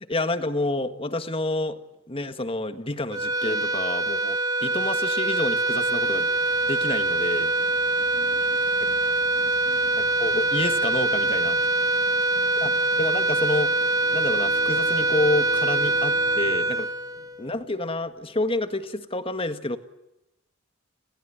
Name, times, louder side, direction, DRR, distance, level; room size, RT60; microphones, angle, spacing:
voice 1, 0.0-1.8 2.1-6.3 6.6-7.5 8.8-8.9 10.0-11.6 12.6-13.7 14.1-16.9 17.4-19.8, left 2 dB, 25° left, 10 dB, 1.8 m, -29 dB
sound 1, 3.1-17.7, right 2 dB, 20° right, 1.4 m, -24 dB
sound 2, 5.8-16.7, right 1 dB, 55° right, 4.8 m, -47 dB
voice 2, 7.9-10.2 11.9-12.9 17.2-17.3, left 1 dB, 80° left, 7 dB, 6.1 m, -52 dB
Bowed string instrument, 13.5-18.1, left 5 dB, 35° right, 5.4 m, -46 dB
30.0 x 21.5 x 8.9 m, 0.92 s
head